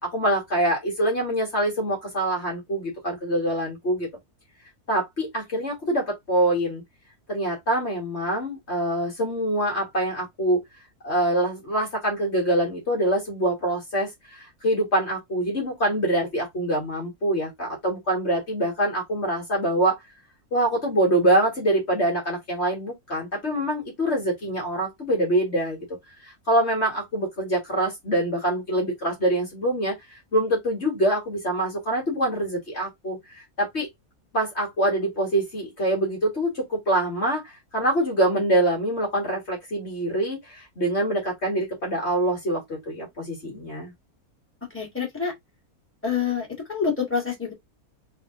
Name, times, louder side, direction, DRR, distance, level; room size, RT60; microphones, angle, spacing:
voice 1, 0.0-4.1 4.9-6.8 7.3-10.6 11.0-20.0 20.5-25.8 26.2-33.9 34.3-43.9, right 1 dB, 45° left, 1.9 m, -25 dB
voice 2, 44.7-45.3 46.0-47.5, left 6 dB, 10° left, 2.0 m, -27 dB
3.7 x 2.9 x 3.6 m
omnidirectional pair, 1.6 m